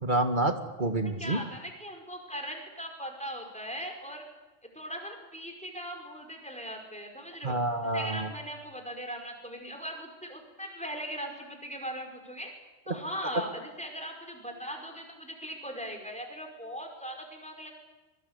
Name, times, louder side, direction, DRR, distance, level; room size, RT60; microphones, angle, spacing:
voice 1, 0.0-1.4 7.4-8.3, right 2 dB, 40° right, 7 dB, 2.0 m, -28 dB
voice 2, 1.0-4.2 4.7-7.6 7.8-12.5 12.9-17.7, equal, 5° left, 3 dB, 5.3 m, -39 dB
25.0 x 23.5 x 8.3 m, 1.2 s
omnidirectional pair, 1.3 m